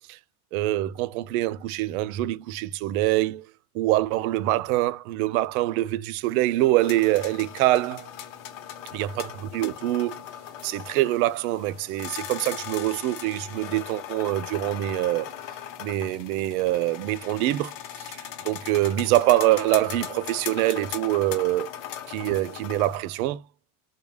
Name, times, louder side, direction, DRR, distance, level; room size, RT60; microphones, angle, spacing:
voice 1, 0.5-3.5 3.7-8.1 8.9-10.2 10.6-15.3 15.8-17.7 18.0-21.7 22.1-23.4, right 16 dB, 75° right, 0.5 m, -25 dB
sound 1, 6.8-23.0, left 10 dB, 50° left, 0.8 m, -39 dB
3.7 x 2.3 x 3.2 m
cardioid pair, 165°, 43 cm